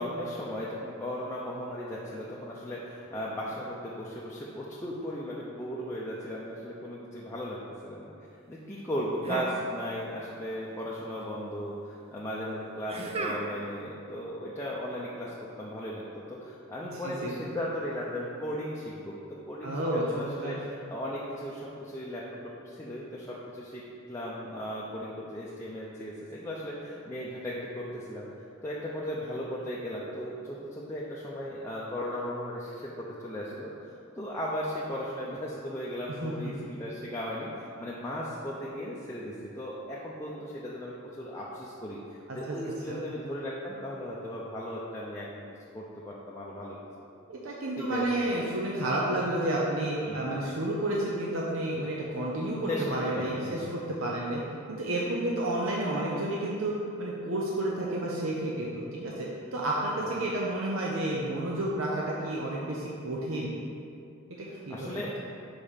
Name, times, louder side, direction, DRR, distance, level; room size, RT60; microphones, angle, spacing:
voice 1, 0.0-8.1 8.5-19.2 19.5-23.8 24.1-28.3 28.6-42.0 42.3-45.5 45.7-46.8 47.8-48.1 50.0-50.4 52.7-53.8 60.0-60.1 64.5-65.1, equal, 15° left, -6 dB, 0.6 m, -36 dB
sound 1, 9.2-10.2 10.5-11.3 12.9-13.8, right 2 dB, 30° right, 0.5 m, -36 dB
voice 2, 19.6-20.6 36.2-36.3 42.3-42.6 42.9-43.0 47.3-54.4 54.7-63.5 64.7-64.9, right 1 dB, 75° right, -4 dB, 0.8 m, -31 dB
5.1 x 4.8 x 5.6 m, 2.5 s
head